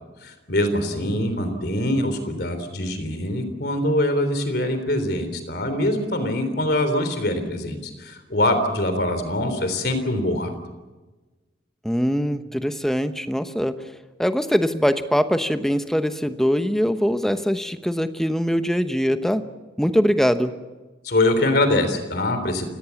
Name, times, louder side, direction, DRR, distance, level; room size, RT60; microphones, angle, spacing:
voice 1, 0.2-10.5 21.0-22.7, left 1 dB, 60° left, 9 dB, 3.6 m, -23 dB
voice 2, 11.8-13.8 14.2-19.5 19.8-20.5, equal, ahead, 9 dB, 1.0 m, -22 dB
28.5 x 18.0 x 7.2 m, 1.2 s
head